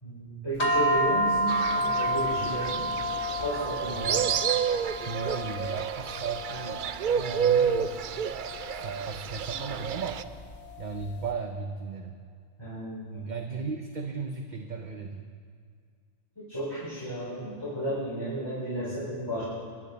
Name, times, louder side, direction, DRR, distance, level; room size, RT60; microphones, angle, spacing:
voice 1, 0.0-4.1 4.9-5.3 9.5-9.6 12.6-13.3 16.5-19.4, equal, 20° left, -11 dB, 4.8 m, -33 dB
sound 1, 0.6-11.1, right 1 dB, 60° left, 2.1 m, -31 dB
Fowl, 1.5-10.2, right 8 dB, 70° right, 0.4 m, -30 dB
voice 2, 3.9-4.5 5.0-7.9 8.7-10.2 10.8-12.2 13.3-15.3, right 5 dB, 40° right, 4 dB, 0.8 m, -36 dB
24.0 x 11.5 x 4.1 m, 2.1 s
omnidirectional pair, 1.3 m